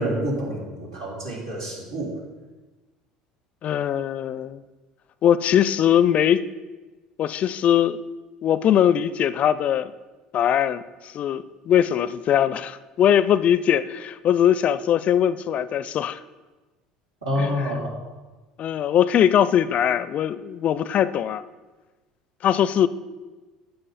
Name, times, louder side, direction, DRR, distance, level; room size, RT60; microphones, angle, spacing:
voice 1, 0.0-2.1 17.2-18.0, equal, 80° right, -4 dB, 3.5 m, -27 dB
voice 2, 3.6-4.6 5.2-6.4 7.2-8.0 8.4-9.9 10.3-16.2 17.4-17.5 18.6-21.4 22.4-22.9, left 10 dB, 45° left, 16 dB, 0.5 m, -21 dB
12.5 x 8.8 x 4.2 m, 1.2 s
hypercardioid pair, 65°, 3 cm